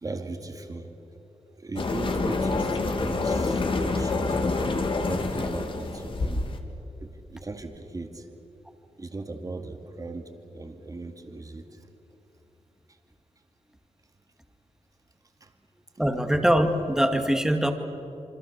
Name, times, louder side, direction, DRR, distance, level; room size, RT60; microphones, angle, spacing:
voice 1, 0.0-0.9 1.6-4.4 5.0-6.4 7.0-8.3 9.0-11.6 15.4-15.5, right 2 dB, 30° right, 5 dB, 2.3 m, -38 dB
sound 1, 1.8-6.6, left 3 dB, 50° left, 2.2 m, -27 dB
voice 2, 16.0-17.7, equal, 5° right, 6 dB, 2.1 m, -22 dB
27.0 x 25.0 x 6.8 m, 3.0 s
wide cardioid pair, 110°, 12 cm